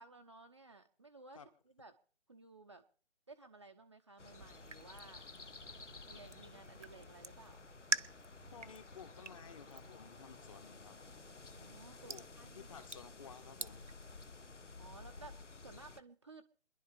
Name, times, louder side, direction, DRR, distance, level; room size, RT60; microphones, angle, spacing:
voice 1, 0.0-1.4 1.8-2.0 2.3-2.9 3.3-5.2 6.1-7.7 11.5-12.9 14.8-16.5, right 3 dB, 25° right, 4 dB, 0.6 m, -56 dB
sound 1, 4.2-16.0, left 3 dB, 85° left, 0.8 m, -54 dB
sound 2, 4.4-14.3, right 3 dB, 85° right, 0.8 m, -47 dB
voice 2, 8.5-10.9 12.1-12.2 12.5-13.8, left 6 dB, 30° left, 11 dB, 1.4 m, -54 dB
28.5 x 11.0 x 3.3 m, 0.43 s
figure-of-eight pair, 145°, 35 cm